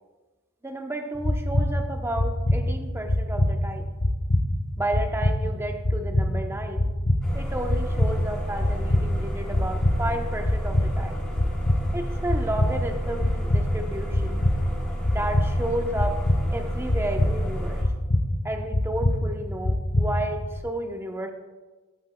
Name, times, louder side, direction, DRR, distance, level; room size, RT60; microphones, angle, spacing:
voice 1, 0.6-3.8 4.8-6.9 7.3-11.2 11.9-14.5 15.1-16.2 16.5-17.8 18.4-21.3, right 1 dB, 10° right, 4 dB, 0.9 m, -32 dB
sound 1, 1.2-20.6, left 1 dB, 40° left, 1.1 m, -25 dB
sound 2, 7.2-17.8, equal, 5° left, 3.3 m, -33 dB
12.5 x 12.0 x 2.3 m, 1.3 s
head